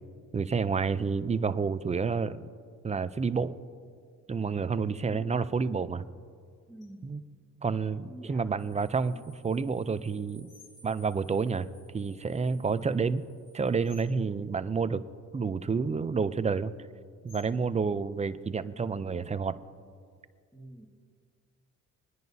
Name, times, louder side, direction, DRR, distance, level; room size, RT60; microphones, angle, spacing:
voice 1, 0.3-2.5 2.8-3.5 4.3-6.1 7.0-7.2 7.6-9.1 9.4-10.5 10.8-11.7 11.9-13.2 13.5-15.0 15.3-16.7 17.2-19.6, right 5 dB, 25° right, 13 dB, 0.5 m, -29 dB
sound 1, 5.1-5.5 6.8-7.3 8.3-8.5 9.1-9.6 10.5-10.7 12.5-13.0 13.8-14.2 15.2-15.4 15.8-16.4 17.3-17.7, left 5 dB, 55° left, 2.3 m, -53 dB
voice 2, 6.7-7.1 8.0-8.5 20.5-20.9, right 1 dB, ahead, 0 dB, 1.7 m, -48 dB
sound 2, 8.6-14.0, equal, 15° left, 2.7 m, -61 dB
26.0 x 10.5 x 2.7 m, 2.1 s
cardioid pair, 90°, 30 cm